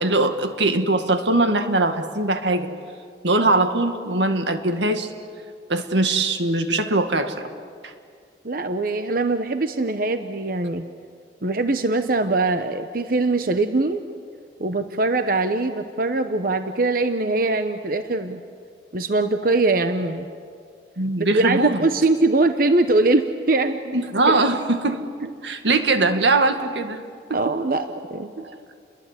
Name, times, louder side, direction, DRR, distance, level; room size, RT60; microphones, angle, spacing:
voice 1, 0.0-2.7 3.2-5.1 5.7-7.5 7.8-7.9 21.0-21.9 23.9-25.0 25.4-27.0 27.3-27.4 28.4-28.5, right 2 dB, 80° right, 7 dB, 1.9 m, -21 dB
voice 2, 8.4-10.8 11.4-14.0 14.6-18.4 18.9-20.3 21.3-24.0 27.3-28.3, right 2 dB, 50° right, 8 dB, 1.0 m, -22 dB
29.5 x 22.0 x 8.3 m, 2.2 s
head